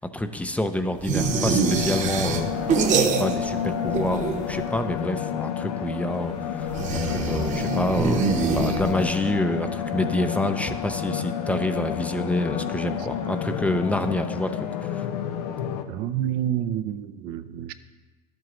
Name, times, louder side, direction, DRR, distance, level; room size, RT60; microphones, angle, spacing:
voice 1, 0.1-6.8 7.0-15.1, left 1 dB, 5° left, 8 dB, 0.6 m, -28 dB
sound 1, 1.0-3.6 3.9-4.7 6.7-9.2, right 5 dB, 40° right, 1.0 m, -25 dB
sound 2, 1.2-15.8, left 8 dB, 75° left, 0.7 m, -30 dB
voice 2, 15.9-17.7, right 10 dB, 55° right, 10 dB, 0.5 m, -28 dB
12.0 x 7.8 x 3.1 m, 1.3 s
hypercardioid pair, 85°, 20 cm